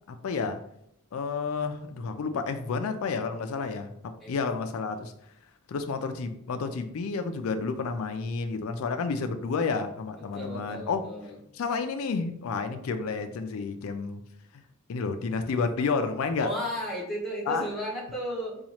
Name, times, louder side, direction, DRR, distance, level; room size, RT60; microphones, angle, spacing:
voice 1, 0.1-0.6 1.1-5.1 5.7-11.0 11.6-14.2 14.9-16.5 17.5-17.7, left 4 dB, 85° left, 0.4 m, -30 dB
voice 2, 10.2-11.4 16.4-18.6, equal, ahead, 0.9 m, -34 dB
2.9 x 2.4 x 4.1 m
head